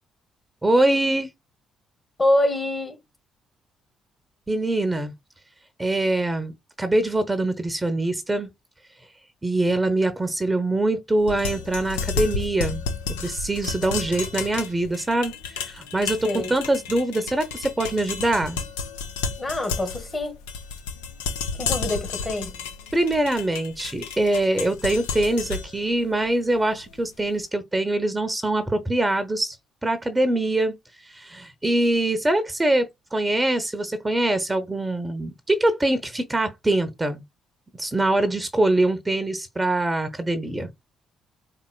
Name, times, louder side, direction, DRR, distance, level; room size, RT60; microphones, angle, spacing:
voice 1, 0.6-1.3 4.5-5.1 5.8-8.5 9.4-12.8 13.2-18.6 22.9-29.6 29.8-30.7 31.0-37.2 37.8-40.7, right 1 dB, 15° right, 0.8 m, -23 dB
voice 2, 2.2-3.0 16.2-16.5 19.4-20.3 21.6-22.6, left 1 dB, 30° left, 1.4 m, -25 dB
sound 1, 11.2-27.3, left 5 dB, 80° left, 0.5 m, -32 dB
4.3 x 3.7 x 2.2 m
hypercardioid pair, 50°, 0 cm